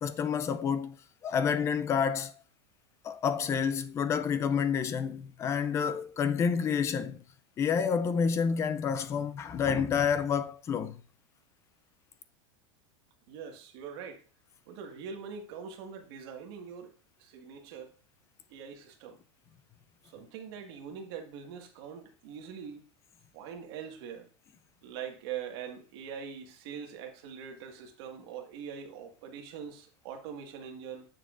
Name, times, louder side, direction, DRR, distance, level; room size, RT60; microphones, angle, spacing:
voice 1, 0.0-1.0 1.2-2.3 3.0-7.2 7.6-11.0, left 6 dB, 20° left, 0.4 m, -29 dB
voice 2, 13.3-14.2 14.7-17.9 18.5-19.2 20.0-22.9 23.3-24.3 24.8-31.1, right 7 dB, 55° right, 1.8 m, -43 dB
9.8 x 6.8 x 2.5 m
supercardioid pair, 165°, 15 cm